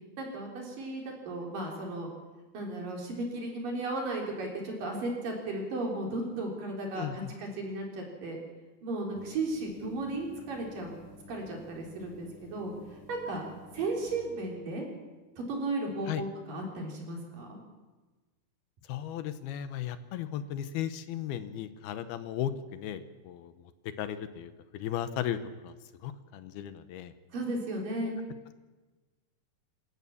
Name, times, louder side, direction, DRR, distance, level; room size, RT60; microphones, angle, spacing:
voice 1, 0.2-2.1 2.5-8.4 8.8-11.0 11.3-14.9 15.4-17.6 27.3-28.2, right 2 dB, 60° right, 0 dB, 5.3 m, -35 dB
voice 2, 7.0-7.3 16.1-16.2 18.8-25.7 26.0-27.1 28.0-28.1, left 10 dB, 80° left, 11 dB, 2.8 m, -36 dB
sound 1, 9.1-14.2, left 4 dB, 50° left, 5.1 m, -52 dB
27.0 x 13.5 x 7.2 m, 1.3 s
omnidirectional pair, 4.5 m